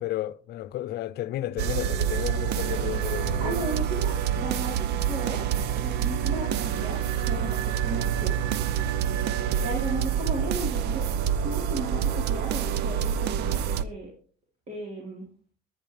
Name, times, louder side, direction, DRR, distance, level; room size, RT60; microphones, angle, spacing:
voice 1, 0.0-3.6, left 14 dB, 70° left, 0.7 m, -32 dB
sound 1, 1.6-13.8, right 9 dB, 80° right, 0.8 m, -27 dB
voice 2, 3.4-4.8 5.1-5.4 5.8-7.0 7.3-8.3 9.6-11.1 11.4-14.1 14.7-15.3, right 2 dB, 40° right, 4.4 m, -35 dB
23.0 x 9.9 x 3.4 m
cardioid pair, 110°, 17 cm